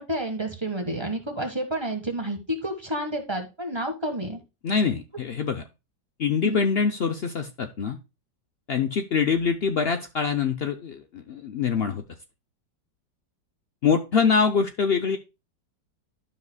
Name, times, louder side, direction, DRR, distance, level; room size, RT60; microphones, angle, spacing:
voice 1, 0.0-4.4 6.4-6.7, right 1 dB, 15° right, 3 dB, 1.3 m, -30 dB
voice 2, 4.6-5.6 6.2-8.0 8.7-12.0 13.8-15.2, left 6 dB, 90° left, 6 dB, 0.5 m, -24 dB
12.0 x 5.7 x 2.2 m, 0.27 s
omnidirectional pair, 1.9 m